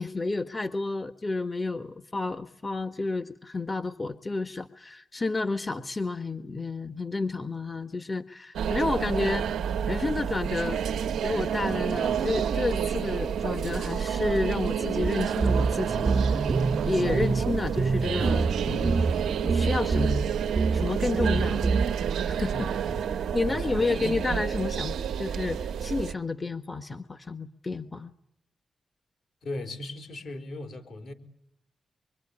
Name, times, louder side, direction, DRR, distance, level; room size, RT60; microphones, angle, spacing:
voice 1, 0.0-9.5 9.9-10.8 11.2-16.5 16.8-19.1 19.4-20.4 20.7-21.6 22.3-22.7 23.3-28.1, left 3 dB, 35° left, 10 dB, 1.4 m, -30 dB
sound 1, 8.5-26.1, right 8 dB, 85° right, 1.1 m, -29 dB
sound 2, 15.0-15.1 15.4-20.2 20.6-20.9 21.2-21.9, right 4 dB, 50° right, 1.0 m, -26 dB
voice 2, 22.5-23.1 23.4-24.1 29.4-31.1, left 2 dB, 70° left, 7 dB, 4.4 m, -38 dB
25.0 x 23.5 x 9.9 m, 0.78 s
supercardioid pair, 45°, 0 cm